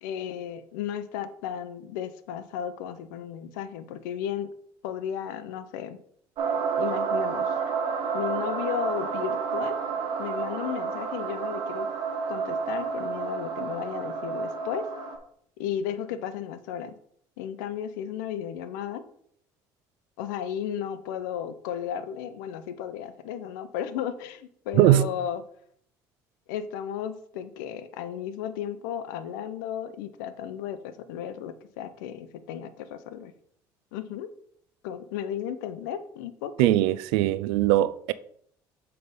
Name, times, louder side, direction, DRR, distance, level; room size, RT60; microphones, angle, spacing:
voice 1, 0.0-4.5 4.8-6.0 6.8-7.7 8.1-9.8 10.2-11.9 12.3-14.9 15.6-16.9 17.4-19.0 20.2-25.4 26.5-33.3 33.9-34.3 34.8-36.7, left 9 dB, 85° left, 0.6 m, -34 dB
sound 1, 6.4-15.2, right 5 dB, 60° right, 1.3 m, -30 dB
voice 2, 36.6-38.1, right 15 dB, 80° right, 0.4 m, -20 dB
7.8 x 3.4 x 5.3 m
supercardioid pair, 80°, 10 cm